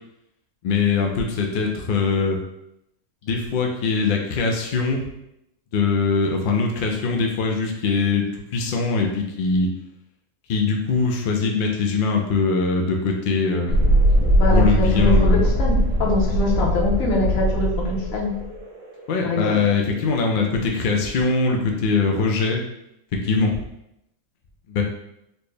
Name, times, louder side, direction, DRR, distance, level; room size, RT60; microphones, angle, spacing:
voice 1, 0.6-2.4 3.3-5.0 5.7-8.3 8.5-9.7 10.5-13.7 14.5-15.4 19.1-22.6 23.2-23.5 24.7-24.8, left 4 dB, 60° left, 1 dB, 0.5 m, -22 dB
Thunderstorm, 13.7-21.1, equal, 80° right, 1.6 m, -21 dB
voice 2, 14.4-18.3 19.2-19.6, left 2 dB, 75° left, -3 dB, 1.3 m, -23 dB
4.3 x 2.1 x 3.3 m, 0.81 s
omnidirectional pair, 1.4 m